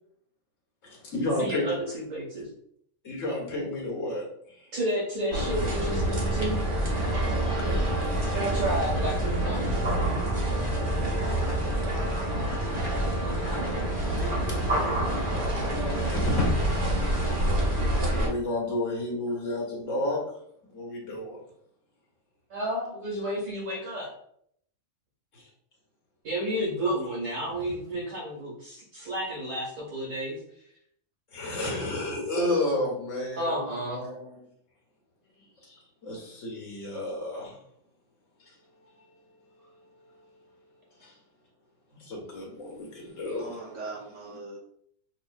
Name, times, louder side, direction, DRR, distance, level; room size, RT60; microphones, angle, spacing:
voice 1, 0.8-1.7 3.0-4.7 7.2-8.3 10.4-10.8 11.5-13.0 13.4-15.4 15.9-17.1 17.4-17.5 18.1-20.2 20.7-21.4 25.3-25.5 31.3-33.6 33.9-34.4 35.7-37.6 38.4-38.5 41.0-41.1 42.0-43.6, left 1 dB, 70° left, -2 dB, 1.6 m, -32 dB
voice 2, 1.4-2.5 4.7-6.6 8.3-9.9 22.5-24.1 26.2-30.4 33.4-34.0, right 1 dB, 80° right, -5 dB, 2.0 m, -31 dB
sound 1, 5.3-18.3, right 1 dB, 40° right, 1.0 m, -27 dB
voice 3, 43.3-44.6, right 3 dB, 60° right, -2 dB, 1.3 m, -40 dB
5.3 x 2.6 x 2.3 m, 0.68 s
omnidirectional pair, 1.4 m